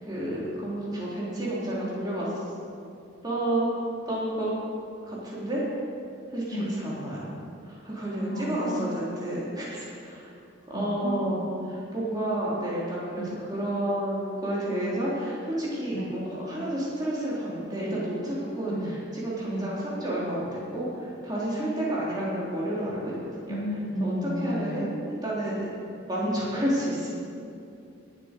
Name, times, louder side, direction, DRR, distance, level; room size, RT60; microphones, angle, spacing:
voice 1, 0.0-2.3 3.2-3.6 4.1-4.5 5.0-5.6 6.3-7.3 7.7-10.3 10.7-11.5 11.9-23.6 24.0-24.9 25.2-25.7 26.1-27.1, right 1 dB, 20° right, -7 dB, 3.9 m, -30 dB
voice 2, 8.3-8.9 10.7-11.4 13.2-13.3 15.9-16.1 18.7-19.0 19.5-19.7 23.5-24.9, equal, 60° left, -6 dB, 2.1 m, -33 dB
19.5 x 8.3 x 5.4 m, 2.5 s
head